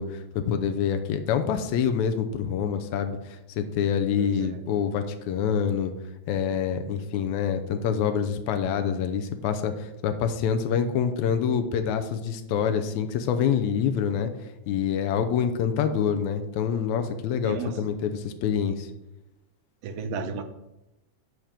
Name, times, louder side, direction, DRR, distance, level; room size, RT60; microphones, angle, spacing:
voice 1, 0.0-5.9 6.3-14.3 14.7-18.9, left 7 dB, 85° left, 7 dB, 2.1 m, -26 dB
voice 2, 4.2-4.6 17.4-17.8 19.8-20.4, right 4 dB, 75° right, 8 dB, 1.7 m, -33 dB
7.6 x 5.1 x 7.3 m, 0.94 s
omnidirectional pair, 3.3 m